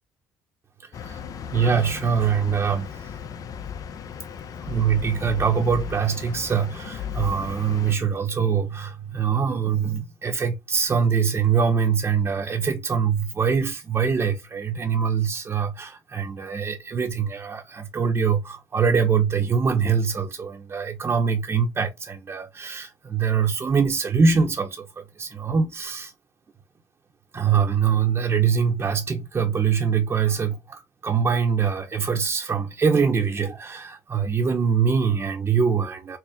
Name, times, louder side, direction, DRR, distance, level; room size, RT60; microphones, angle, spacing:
voice 1, 0.8-1.2 1.5-3.1 4.6-26.1 27.3-36.2, right 6 dB, 35° right, 0.7 m, -23 dB
sound 1, 0.9-8.0, left 8 dB, 50° left, 0.5 m, -35 dB
4.2 x 2.0 x 3.3 m
supercardioid pair, 75°, 8 cm